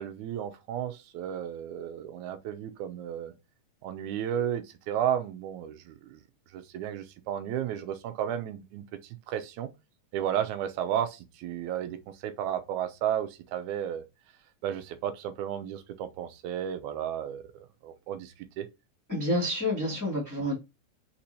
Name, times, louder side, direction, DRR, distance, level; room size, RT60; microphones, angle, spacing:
voice 1, 0.0-3.3 3.8-6.2 6.5-9.7 10.1-14.0 14.6-18.7, right 10 dB, 80° right, 2.0 m, -33 dB
voice 2, 19.1-20.5, left 1 dB, 10° left, 1.3 m, -28 dB
4.5 x 4.3 x 2.7 m
omnidirectional pair, 3.5 m